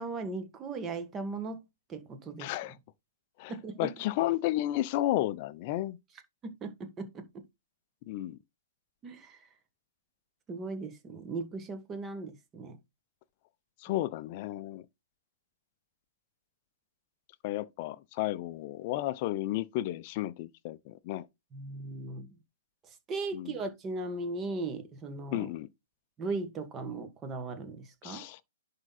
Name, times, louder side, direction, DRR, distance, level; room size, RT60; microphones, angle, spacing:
voice 1, 0.0-1.6 1.9-2.5 3.5-3.9 6.4-7.2 9.0-9.4 10.5-12.8 21.5-22.3 23.1-25.5 26.2-28.3, right 3 dB, 20° right, 1.7 m, -37 dB
voice 2, 2.4-2.8 3.4-6.0 8.1-8.4 13.8-14.8 17.4-21.3 23.3-23.6 25.3-25.7 28.0-28.4, left 15 dB, 40° left, 0.7 m, -32 dB
10.5 x 3.8 x 4.2 m
hypercardioid pair, 125°, 0 cm